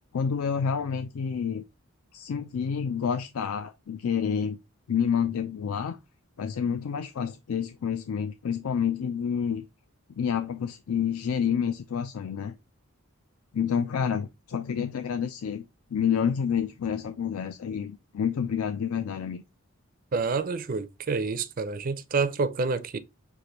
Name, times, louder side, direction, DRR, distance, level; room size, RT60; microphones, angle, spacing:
voice 1, 0.1-1.6 2.1-4.6 4.9-6.0 6.4-9.6 10.2-12.5 13.5-15.7 15.9-19.4, left 7 dB, 80° left, 0.4 m, -28 dB
voice 2, 20.1-23.0, right 4 dB, 40° right, 0.4 m, -28 dB
6.5 x 2.5 x 2.9 m
head